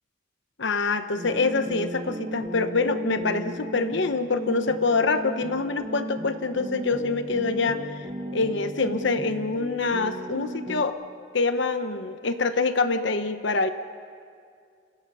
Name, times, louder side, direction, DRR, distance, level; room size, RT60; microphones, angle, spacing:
voice 1, 0.6-8.1 8.3-11.0 11.3-13.7, left 3 dB, 65° left, 9 dB, 1.0 m, -25 dB
sound 1, 1.2-10.8, equal, 25° right, 1.6 m, -36 dB
29.5 x 27.0 x 5.6 m, 2.3 s
head